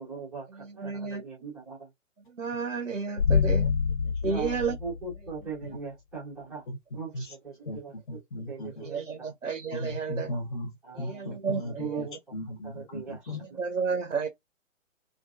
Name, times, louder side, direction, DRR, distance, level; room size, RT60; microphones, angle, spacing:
voice 1, 0.0-1.9 4.2-6.6 6.9-8.2 8.5-9.3 10.8-12.2 12.6-13.6, right 5 dB, ahead, 0.6 m, -40 dB
voice 2, 0.5-1.2 2.3-3.7 4.2-4.8 8.8-10.3 10.9-11.8 13.5-14.3, right 5 dB, 80° right, 0.7 m, -32 dB
sound 1, 3.2-5.4, left 6 dB, 75° left, 1.2 m, -26 dB
voice 3, 8.1-8.9 9.7-13.4, left 1 dB, 40° left, 1.0 m, -37 dB
2.6 x 2.5 x 2.3 m
figure-of-eight pair, 130°, 39 cm